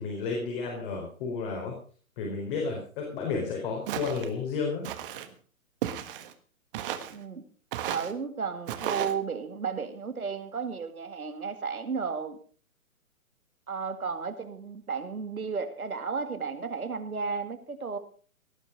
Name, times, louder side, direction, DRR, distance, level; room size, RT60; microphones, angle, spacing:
voice 1, 0.0-1.7 2.2-4.8, left 4 dB, 40° left, 0 dB, 4.4 m, -32 dB
Walk footsteps, 3.9-4.3 4.8-5.3 5.8-6.3 6.7-7.2 7.7-8.1 8.7-9.1, right 11 dB, 40° right, 1.5 m, -34 dB
voice 2, 7.1-7.4 7.9-12.4 13.7-18.0, right 5 dB, 85° right, 8 dB, 2.3 m, -33 dB
18.0 x 9.3 x 5.2 m, 0.42 s
figure-of-eight pair, 130°, 42 cm